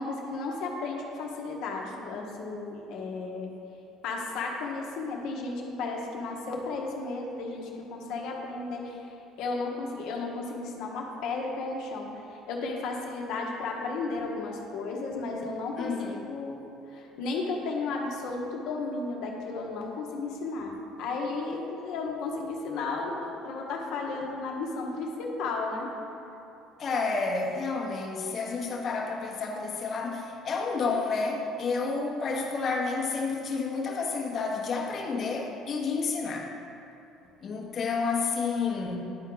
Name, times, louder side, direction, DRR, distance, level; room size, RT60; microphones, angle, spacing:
voice 1, 0.0-3.5 4.0-16.6 16.9-25.9, left 3 dB, 70° left, 0 dB, 1.2 m, -34 dB
voice 2, 15.8-16.2 26.8-36.5 37.4-39.0, left 4 dB, 45° left, -1 dB, 1.2 m, -30 dB
11.0 x 4.4 x 3.9 m, 2.8 s
supercardioid pair, 85°, 0 cm